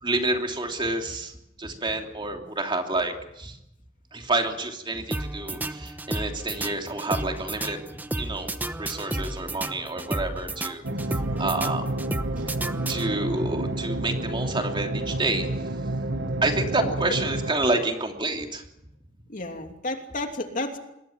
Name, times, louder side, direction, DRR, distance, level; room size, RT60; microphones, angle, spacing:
voice 1, 0.0-1.3 1.6-3.6 4.1-7.8 8.2-10.9 11.4-11.8 12.9-15.5 16.4-18.6, right 2 dB, 25° right, 3 dB, 3.1 m, -28 dB
sound 1, 5.1-13.4, right 1 dB, 10° right, 0.9 m, -33 dB
sound 2, 10.8-17.5, right 1 dB, 60° right, 1.4 m, -30 dB
voice 2, 10.9-11.3 16.8-17.0 19.3-20.8, left 2 dB, 40° left, 4 dB, 2.9 m, -33 dB
26.5 x 21.5 x 7.4 m, 0.83 s
head